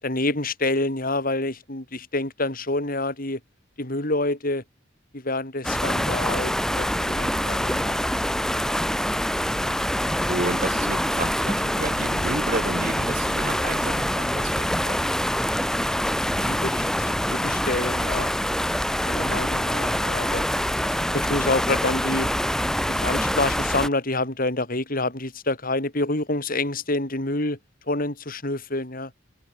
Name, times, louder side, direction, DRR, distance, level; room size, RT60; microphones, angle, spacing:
voice 1, 0.0-3.4 3.8-4.6 5.1-8.0 16.3-18.3 19.0-20.5 21.1-22.3 22.9-27.6 27.9-29.1, left 2 dB, 45° left, 4.0 m, -27 dB
sound 1, 5.6-23.9, equal, 5° left, 2.6 m, -25 dB
voice 2, 10.3-15.0, right 2 dB, 45° right, 1.8 m, -31 dB
head